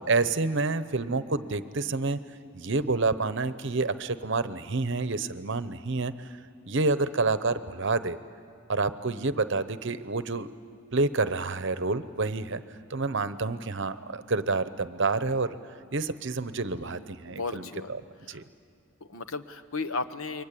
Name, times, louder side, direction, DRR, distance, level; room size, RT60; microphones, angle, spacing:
voice 1, 0.0-2.2 2.5-6.3 6.6-8.2 8.7-10.5 10.9-12.6 12.9-15.6 15.9-17.6 18.3-18.4, right 3 dB, 60° right, 13 dB, 0.9 m, -28 dB
voice 2, 16.7-17.9 18.3-18.4 19.0-20.4, left 3 dB, 75° left, 11 dB, 1.1 m, -35 dB
28.5 x 23.5 x 8.5 m, 2.5 s
head